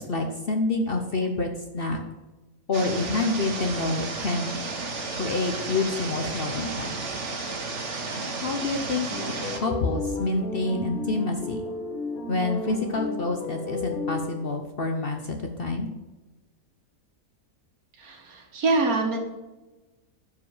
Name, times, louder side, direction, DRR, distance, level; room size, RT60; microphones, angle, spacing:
voice 1, 0.0-2.0 2.7-4.6 5.1-7.1 8.4-9.1 9.5-11.6 12.3-15.9, left 3 dB, 45° left, 4 dB, 1.0 m, -27 dB
sound 1, 2.7-9.6, right 3 dB, 55° right, 1.6 m, -33 dB
sound 2, 9.1-14.5, left 3 dB, 85° left, 1.7 m, -33 dB
voice 2, 18.0-19.2, right 3 dB, 80° right, 2 dB, 2.0 m, -25 dB
12.0 x 5.0 x 4.9 m, 1.2 s
omnidirectional pair, 1.5 m